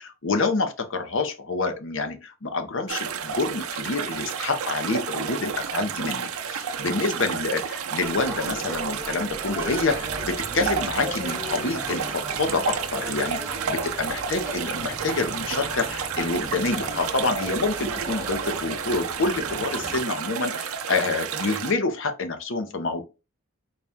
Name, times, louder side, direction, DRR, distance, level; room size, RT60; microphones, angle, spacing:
voice 1, 0.0-13.4 13.7-23.0, left 3 dB, 55° left, 0.6 m, -27 dB
sound 1, 2.9-21.7, right 7 dB, 75° right, 0.5 m, -31 dB
sound 2, 8.0-20.0, equal, 10° right, 0.6 m, -38 dB
4.1 x 2.3 x 3.4 m
head